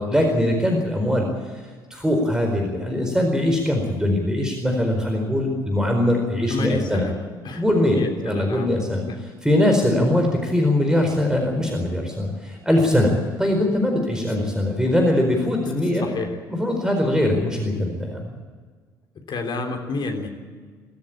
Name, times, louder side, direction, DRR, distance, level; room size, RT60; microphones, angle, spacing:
voice 1, 0.0-7.1 7.6-9.0 9.4-16.1 16.5-18.3, left 1 dB, 5° right, 3 dB, 4.6 m, -21 dB
voice 2, 6.5-7.1 7.4-7.6 7.9-8.7 9.0-9.1 16.0-16.3 19.3-20.3, left 3 dB, 45° left, 3 dB, 3.6 m, -28 dB
24.0 x 14.0 x 8.7 m, 1.6 s
figure-of-eight pair, 50°, 11 cm